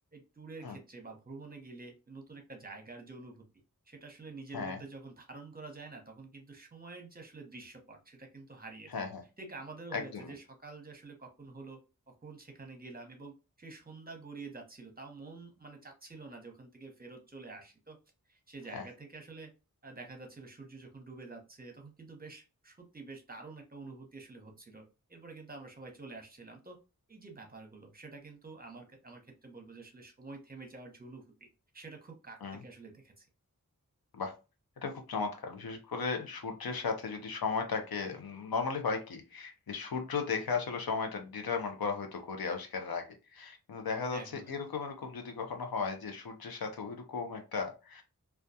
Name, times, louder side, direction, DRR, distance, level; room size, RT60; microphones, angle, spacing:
voice 1, 0.1-3.5 3.9-9.1 9.4-11.8 12.1-18.0 18.3-19.5 19.8-24.8 25.1-26.8 27.1-31.2 31.7-33.3 44.1-44.6, right 3 dB, 25° right, 3 dB, 0.8 m, -48 dB
voice 2, 8.9-9.2 9.9-10.3 18.7-18.8 32.4-32.6 34.1-34.4 34.8-44.2 44.5-48.0, left 5 dB, 85° left, 5 dB, 0.6 m, -36 dB
2.2 x 2.2 x 2.6 m, 0.29 s
wide cardioid pair, 40°, 35 cm